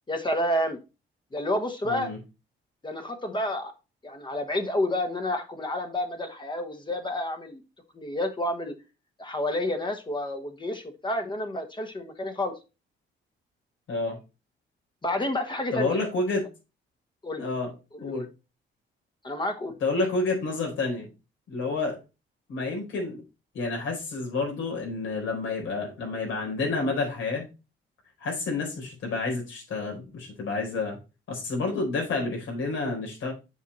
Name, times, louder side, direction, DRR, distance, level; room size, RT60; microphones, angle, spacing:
voice 1, 0.1-0.8 1.3-2.1 2.8-3.7 4.0-7.6 7.9-8.7 9.2-12.5 15.0-16.0 17.2-17.5 17.9-18.3 19.2-19.7, left 1 dB, 25° left, 5 dB, 1.2 m, -29 dB
voice 2, 1.8-2.2 13.9-14.2 15.7-16.4 17.4-17.7 18.0-18.2 19.8-21.1 21.5-22.0 22.5-23.2 23.5-27.5 28.2-31.0 31.3-33.3, left 3 dB, 75° left, 0 dB, 4.1 m, -29 dB
7.2 x 4.6 x 4.1 m, 0.29 s
cardioid pair, 90°, 20 cm